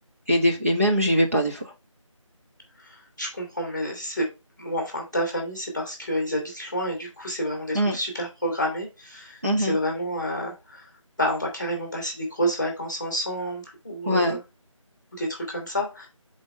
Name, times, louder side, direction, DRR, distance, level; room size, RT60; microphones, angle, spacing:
voice 1, 0.3-1.7 7.7-8.0 9.4-9.8 14.1-14.4, equal, 25° right, -1 dB, 1.0 m, -22 dB
voice 2, 2.8-4.3 4.6-10.9 11.2-14.4 15.2-16.1, equal, 5° right, -1 dB, 1.9 m, -29 dB
7.8 x 4.0 x 3.4 m, 0.27 s
figure-of-eight pair, 180°, 17 cm